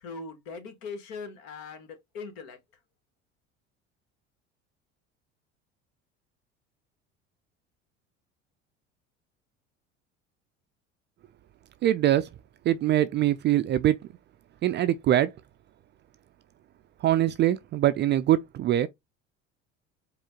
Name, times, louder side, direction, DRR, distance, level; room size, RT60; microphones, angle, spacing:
voice 1, 0.0-2.6, left 4 dB, 60° left, 1.6 m, -40 dB
voice 2, 11.8-12.3 12.6-14.0 14.6-15.3 17.0-18.9, right 12 dB, 30° right, 0.4 m, -23 dB
4.9 x 2.4 x 3.6 m
figure-of-eight pair, 65°, 38 cm